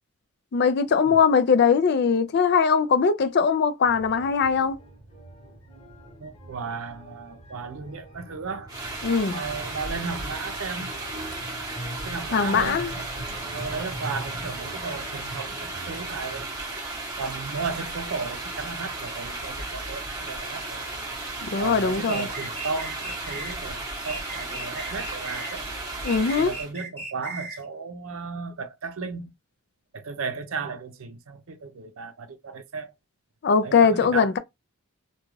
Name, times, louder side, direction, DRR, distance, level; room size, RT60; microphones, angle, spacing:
voice 1, 0.5-4.8 9.0-9.4 12.3-12.9 21.4-22.2 26.0-26.5 33.4-34.4, left 6 dB, 50° left, 0.4 m, -21 dB
sound 1, 3.8-16.4, right 1 dB, 30° left, 1.1 m, -42 dB
voice 2, 6.2-8.7 9.3-10.9 12.0-16.5 17.2-20.9 21.6-25.7 26.4-29.3 29.9-32.9 33.6-34.4, right 4 dB, 65° right, 0.6 m, -35 dB
sound 2, 8.7-26.7, right 2 dB, 15° right, 0.9 m, -35 dB
sound 3, 22.1-23.6 24.0-25.6 26.0-27.6, right 2 dB, 10° left, 0.8 m, -37 dB
2.4 x 2.3 x 3.1 m
head